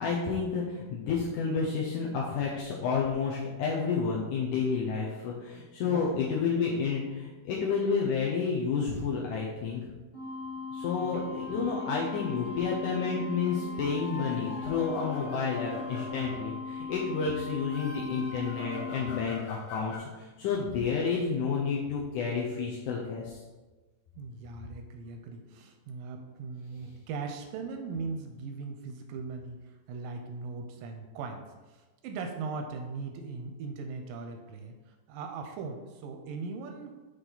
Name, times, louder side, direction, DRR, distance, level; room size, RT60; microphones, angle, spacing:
voice 1, 0.0-9.9 10.7-23.4, left 5 dB, 80° left, -4 dB, 1.7 m, -30 dB
voice 2, 5.8-6.4 11.0-11.6 24.2-29.6 29.9-34.8 35.1-37.0, right 4 dB, 85° right, 4 dB, 2.0 m, -39 dB
sound 1, 10.1-19.2, left 5 dB, 25° left, 1.0 m, -38 dB
Piano, 10.9-16.1, equal, 45° left, 1.5 m, -49 dB
sound 2, 13.9-17.1 17.5-20.0, left 4 dB, 65° left, 2.0 m, -45 dB
9.0 x 3.3 x 3.9 m, 1.2 s
omnidirectional pair, 4.3 m